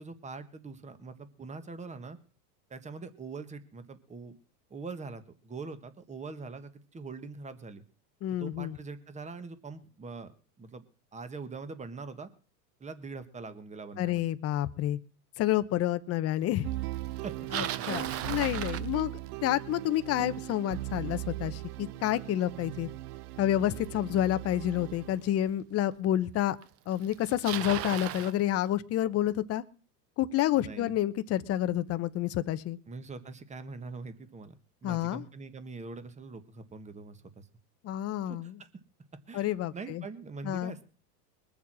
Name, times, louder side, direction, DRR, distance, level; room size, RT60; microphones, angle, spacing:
voice 1, 0.0-2.2 2.7-4.4 4.7-7.8 8.4-10.3 10.6-10.8 11.1-12.3 12.8-14.2 17.2-17.7 30.5-30.9 32.9-34.5 34.8-37.5 38.2-38.7 39.3-40.8, right 4 dB, 15° right, 11 dB, 1.4 m, -43 dB
voice 2, 8.2-8.8 14.0-15.0 15.4-16.7 17.5-19.1 19.4-22.9 23.4-26.6 26.9-29.6 30.2-32.8 34.8-35.2 37.8-38.5 39.3-40.0 40.4-40.7, left 13 dB, 30° left, 13 dB, 0.9 m, -29 dB
sound 1, 16.6-25.4, right 17 dB, 65° right, 0.7 m, -39 dB
Bicycle, 17.2-19.5 24.6-24.7 25.5-25.6 26.6-26.7 26.9-28.4, right 12 dB, 30° right, 0.7 m, -36 dB
21.5 x 7.3 x 6.2 m, 0.38 s
supercardioid pair, 120°, 47 cm